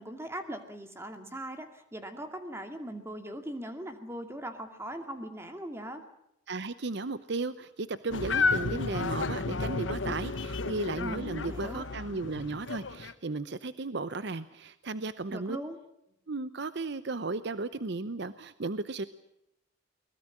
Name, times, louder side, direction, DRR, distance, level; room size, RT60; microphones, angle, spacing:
voice 1, 0.0-6.0 11.0-11.8 15.3-15.8, right 1 dB, 15° right, 6 dB, 2.3 m, -40 dB
voice 2, 6.5-15.6 16.3-19.0, right 3 dB, 60° right, 14 dB, 0.8 m, -35 dB
sound 1, 8.1-13.1, left 4 dB, 75° left, 1.2 m, -32 dB
22.5 x 20.5 x 7.4 m, 0.79 s
head